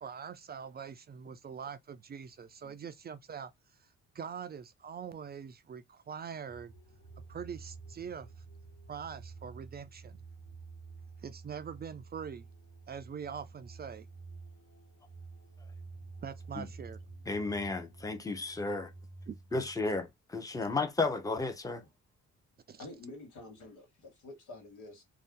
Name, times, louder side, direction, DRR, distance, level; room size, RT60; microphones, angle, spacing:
voice 1, 0.0-3.5 4.1-6.7 7.3-8.3 8.9-10.2 11.2-12.5 12.9-14.1 16.2-17.0 19.3-19.4 22.7-22.9, right 7 dB, 35° right, 0.4 m, -43 dB
sound 1, 6.5-19.9, right 4 dB, 65° left, 1.3 m, -50 dB
voice 2, 17.3-18.9 19.5-21.8, left 3 dB, 10° left, 0.7 m, -33 dB
voice 3, 22.8-25.0, left 2 dB, 85° left, 1.4 m, -48 dB
2.6 x 2.2 x 3.6 m
cardioid pair, 90°, 30 cm